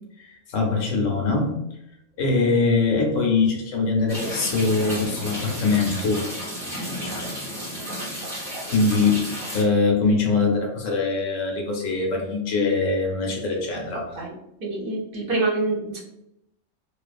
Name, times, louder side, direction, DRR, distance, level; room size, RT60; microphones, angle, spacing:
voice 1, 0.2-1.6 2.2-6.3 8.7-14.2, left 4 dB, 85° left, 0 dB, 1.1 m, -22 dB
sound 1, 4.1-9.6, equal, 15° right, 1.0 m, -32 dB
voice 2, 14.6-16.0, right 2 dB, 55° right, -2 dB, 0.7 m, -26 dB
2.4 x 2.3 x 2.4 m, 0.82 s
omnidirectional pair, 1.3 m